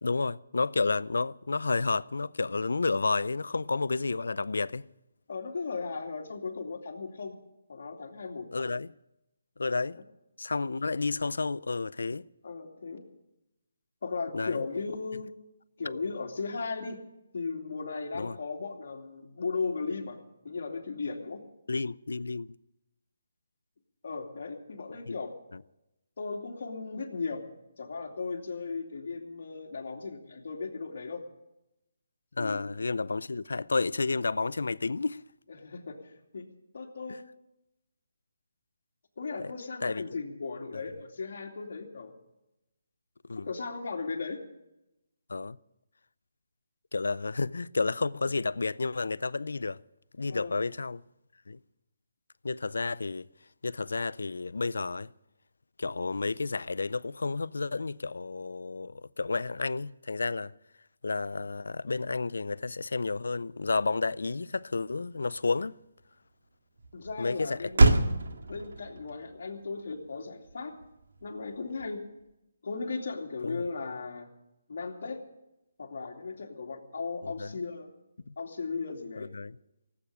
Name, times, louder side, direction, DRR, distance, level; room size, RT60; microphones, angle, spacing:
voice 1, 0.0-4.8 8.5-8.9 9.6-10.0 10.4-12.3 14.3-14.6 18.1-18.4 21.7-22.5 25.1-25.2 32.4-35.2 37.1-37.2 39.4-39.5 39.8-40.0 40.7-40.8 43.3-43.5 45.3-45.6 46.9-49.8 50.1-51.0 51.5-51.6 52.4-53.3 53.6-55.1 55.8-60.5 61.0-65.8 67.2-67.9 73.4-73.6 77.2-77.5 78.3-78.4 79.2-79.6, left 3 dB, 85° left, 0.5 m, -31 dB
voice 2, 5.3-7.4 7.7-8.5 9.9-10.0 12.4-13.0 14.0-15.3 15.8-17.0 17.3-20.2 20.4-21.4 24.0-25.3 26.2-27.4 27.8-31.2 32.4-32.7 35.6-36.5 36.7-37.2 39.2-42.1 43.3-44.4 50.3-50.6 66.9-67.8 68.5-70.7 71.2-72.0 72.6-74.3 74.7-75.2 75.8-77.9 78.4-79.3, left 4 dB, 60° left, 2.7 m, -36 dB
Motor vehicle (road), 63.6-72.3, right 2 dB, 80° right, 1.8 m, -30 dB
17.5 x 8.6 x 9.1 m
hypercardioid pair, 165°, 0 cm